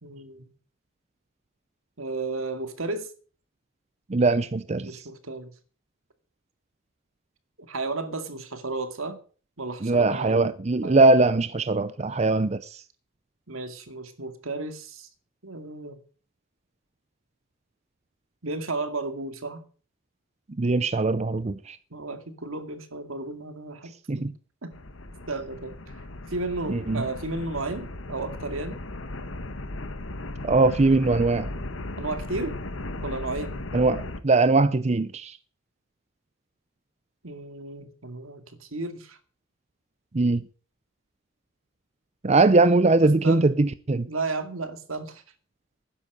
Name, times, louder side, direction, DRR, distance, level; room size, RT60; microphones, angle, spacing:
voice 1, 0.0-0.5 2.0-3.1 4.9-5.5 7.7-9.2 9.6-10.5 10.8-11.1 13.5-15.1 15.4-16.0 18.4-19.6 21.9-24.3 24.6-24.7 25.3-26.0 26.3-28.8 32.0-32.6 33.0-33.6 37.2-39.2 43.0-43.5 44.1-45.2, right 3 dB, 80° right, 2.2 m, -33 dB
voice 2, 4.1-4.9 9.8-12.8 20.6-21.8 24.1-24.3 26.7-27.0 30.4-31.5 33.7-35.4 40.1-40.4 42.2-44.1, right 3 dB, 30° right, 0.5 m, -21 dB
sound 1, 24.7-34.2, left 2 dB, 65° left, 1.3 m, -36 dB
12.0 x 10.0 x 6.6 m
head